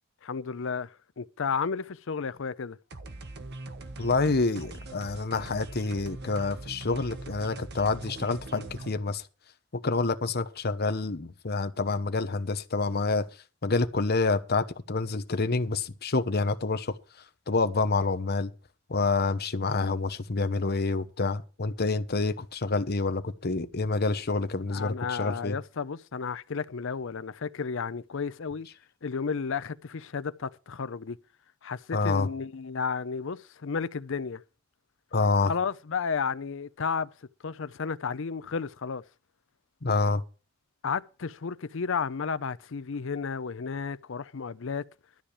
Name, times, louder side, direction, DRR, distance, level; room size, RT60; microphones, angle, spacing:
voice 1, 0.2-2.8 24.7-28.7 29.0-31.2 31.6-34.4 35.4-37.1 37.4-39.0 40.8-44.8, left 5 dB, 65° left, 0.6 m, -32 dB
sound 1, 2.9-8.9, right 2 dB, 55° right, 1.3 m, -42 dB
voice 2, 4.0-9.2 9.8-13.3 13.6-17.0 17.5-18.5 18.9-25.6 31.9-32.3 35.1-35.5 39.8-40.2, left 3 dB, 50° left, 1.0 m, -27 dB
13.0 x 4.9 x 8.7 m
head